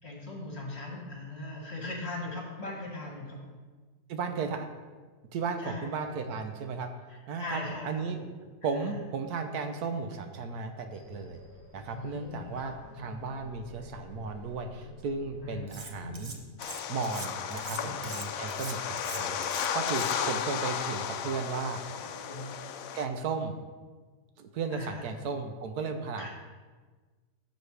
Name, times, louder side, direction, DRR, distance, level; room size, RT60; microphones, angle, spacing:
voice 1, 0.0-3.5 5.6-5.9 7.1-8.3 8.7-9.0 11.9-12.7 12.9-13.0 15.4-15.6 15.9-16.3 17.6-17.9 21.9-22.6 24.7-25.0 26.2-26.3, left 2 dB, 40° left, -2 dB, 2.1 m, -40 dB
voice 2, 4.1-4.7 5.3-6.9 7.3-8.2 8.6-11.4 11.7-16.3 16.9-19.4 19.7-21.8 22.9-23.6 24.4-26.3, right 4 dB, 75° right, 7 dB, 1.2 m, -35 dB
sound 1, 10.9-16.3, left 1 dB, 15° left, 2.5 m, -51 dB
Cutlery silverware, 15.7-16.4 16.6-20.4, right 3 dB, 35° right, 0.5 m, -42 dB
sound 2, 16.6-23.0, left 8 dB, 70° left, 0.9 m, -34 dB
12.5 x 6.9 x 3.3 m, 1.4 s
omnidirectional pair, 1.7 m